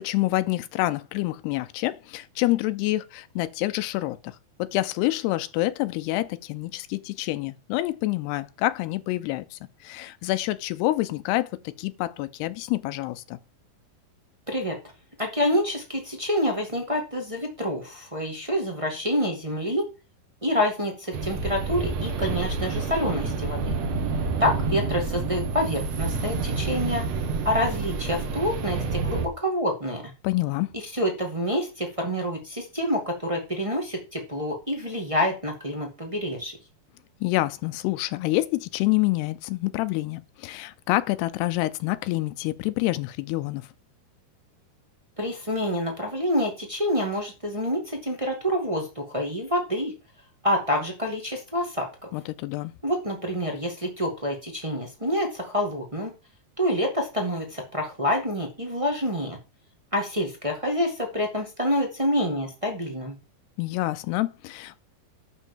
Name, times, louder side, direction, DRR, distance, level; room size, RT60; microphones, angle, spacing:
voice 1, 0.0-11.5 11.8-13.4 30.2-30.7 37.2-43.6 52.1-52.7 63.6-64.8, left 18 dB, 80° left, 2.6 m, -27 dB
voice 2, 14.5-14.8 15.2-19.8 20.4-23.7 24.4-27.0 27.4-30.1 30.7-36.6 45.2-49.9 50.4-51.9 52.8-56.1 56.6-59.4 59.9-63.1, equal, 40° right, 0.4 m, -27 dB
sound 1, 21.1-29.3, right 4 dB, 55° right, 2.0 m, -28 dB
11.0 x 4.4 x 7.1 m
omnidirectional pair, 4.8 m